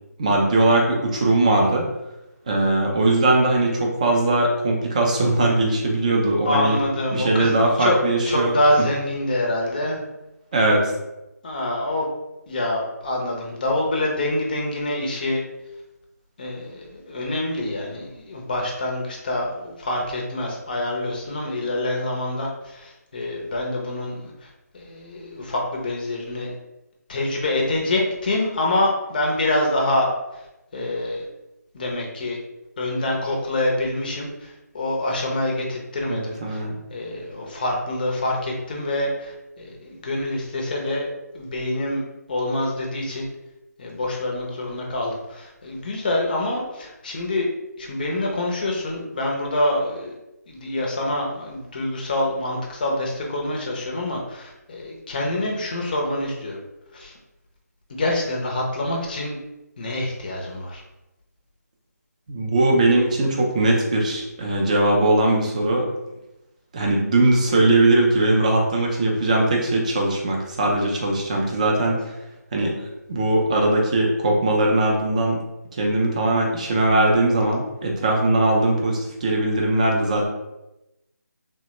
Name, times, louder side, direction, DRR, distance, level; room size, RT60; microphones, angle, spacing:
voice 1, 0.2-1.9 2.5-6.8 7.1-8.9 10.5-10.9 36.1-36.8 62.3-65.9 66.7-72.0 72.5-72.8 73.1-75.4 75.8-80.2, right 2 dB, 25° right, 0 dB, 0.4 m, -20 dB
voice 2, 6.4-7.5 7.8-8.0 8.3-10.0 11.4-12.1 12.5-15.4 16.4-24.3 24.7-26.5 27.1-30.1 30.7-31.2 31.7-32.4 32.8-34.3 34.7-36.6 36.9-41.1 41.3-42.0 42.3-43.3 43.8-47.5 47.8-50.1 50.5-56.6 56.9-57.1 58.0-59.3 59.8-60.8, left 1 dB, 30° left, -1 dB, 0.5 m, -26 dB
3.2 x 2.1 x 2.9 m, 0.94 s
figure-of-eight pair, 165°, 9 cm